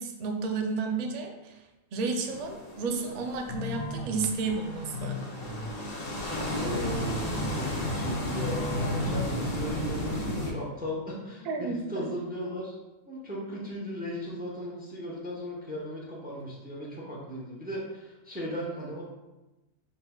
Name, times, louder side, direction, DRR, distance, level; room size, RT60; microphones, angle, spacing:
voice 1, 0.0-1.6 1.9-5.2 11.4-12.1, right 4 dB, 65° right, 3 dB, 0.4 m, -32 dB
sound 1, 2.2-10.5, left 1 dB, 35° left, 0.7 m, -34 dB
sound 2, 3.5-9.2, left 3 dB, 80° left, 1.0 m, -36 dB
voice 2, 6.5-12.8 13.1-19.0, equal, 10° right, -4 dB, 0.7 m, -37 dB
5.5 x 3.9 x 2.3 m, 1.0 s
omnidirectional pair, 1.4 m